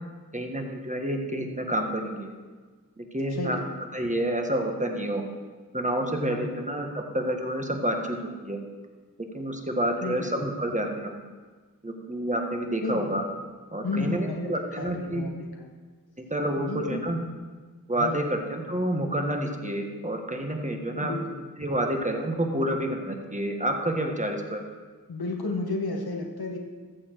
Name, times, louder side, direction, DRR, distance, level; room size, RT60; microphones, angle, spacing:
voice 1, 0.3-2.3 3.0-3.6 3.9-5.2 5.7-8.6 9.3-11.2 11.8-13.2 13.7-15.3 16.2-17.2 17.9-21.1 21.6-24.6, right 1 dB, 20° right, 2 dB, 1.5 m, -29 dB
voice 2, 3.3-3.7 6.2-6.5 10.0-10.3 12.8-13.1 13.8-15.7 16.6-17.0 18.0-18.2 21.0-21.4 25.1-26.6, left 3 dB, 90° left, 1 dB, 1.4 m, -32 dB
14.0 x 7.1 x 4.6 m, 1.4 s
wide cardioid pair, 50°, 36 cm